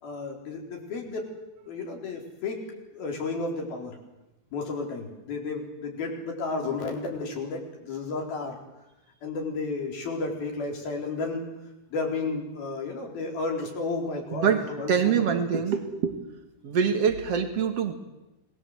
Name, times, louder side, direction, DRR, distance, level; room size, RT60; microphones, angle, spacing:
voice 1, 0.0-1.3 1.6-2.6 2.9-4.0 4.5-8.6 9.2-11.5 11.9-15.2 15.5-15.6, left 3 dB, 50° left, 1 dB, 5.7 m, -32 dB
voice 2, 14.3-16.2 16.6-17.9, right 7 dB, 55° right, 7 dB, 1.8 m, -25 dB
27.5 x 21.0 x 8.0 m, 0.99 s
omnidirectional pair, 5.5 m